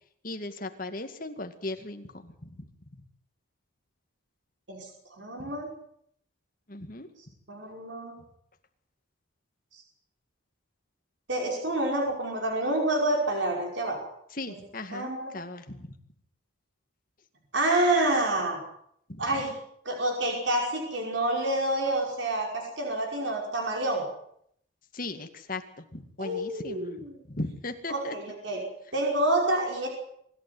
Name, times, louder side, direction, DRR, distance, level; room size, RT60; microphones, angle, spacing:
voice 1, 0.2-2.3 6.7-7.1 14.4-15.9 19.1-19.2 24.9-25.6 25.9-27.0 27.3-28.1, left 2 dB, 45° left, 6 dB, 2.2 m, -37 dB
voice 2, 5.2-5.7 7.5-8.2 11.3-14.0 14.5-14.6 14.9-15.3 17.5-18.6 19.2-19.5 19.9-24.0 26.2-27.2 27.9-28.6 28.9-29.9, right 1 dB, 70° right, 0 dB, 5.5 m, -28 dB
24.5 x 12.5 x 9.7 m, 0.71 s
head